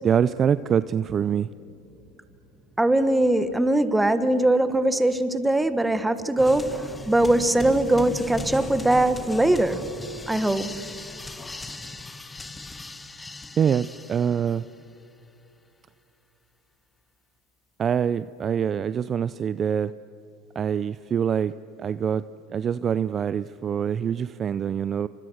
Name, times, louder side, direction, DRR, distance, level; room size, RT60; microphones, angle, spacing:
voice 1, 0.0-1.5 13.6-14.6 17.8-19.9 20.6-21.5 21.8-22.2 22.5-25.1, right 8 dB, 30° right, 15 dB, 0.5 m, -24 dB
voice 2, 2.8-9.8 10.3-10.9, right 1 dB, 5° right, 11 dB, 1.5 m, -21 dB
sound 1, 6.4-14.8, left 2 dB, 15° left, 1.3 m, -38 dB
29.5 x 25.5 x 6.4 m, 2.8 s
supercardioid pair, 105°, 0 cm